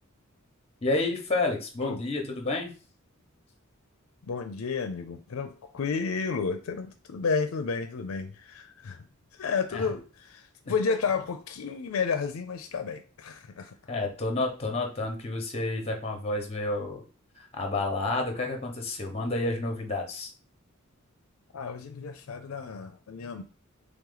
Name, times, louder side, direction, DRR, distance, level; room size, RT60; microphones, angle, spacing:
voice 1, 0.8-2.7 9.7-9.8 13.9-17.0 17.4-20.3, left 2 dB, 30° left, 3 dB, 0.9 m, -30 dB
voice 2, 4.3-9.0 9.3-13.8 21.5-23.4, left 5 dB, 80° left, 7 dB, 0.5 m, -31 dB
3.5 x 3.1 x 3.8 m, 0.36 s
head